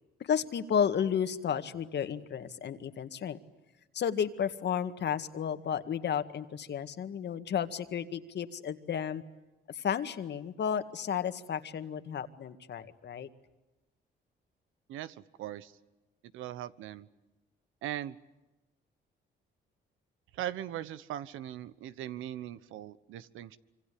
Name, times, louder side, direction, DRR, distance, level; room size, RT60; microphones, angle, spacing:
voice 1, 0.2-3.4 3.9-9.2 9.7-13.3, left 8 dB, 60° left, 10 dB, 1.9 m, -32 dB
voice 2, 14.9-15.7 16.3-17.1 17.8-18.2 20.3-23.6, right 12 dB, 90° right, 15 dB, 1.2 m, -39 dB
26.0 x 25.0 x 8.6 m, 1.1 s
cardioid pair, 90°, 20 cm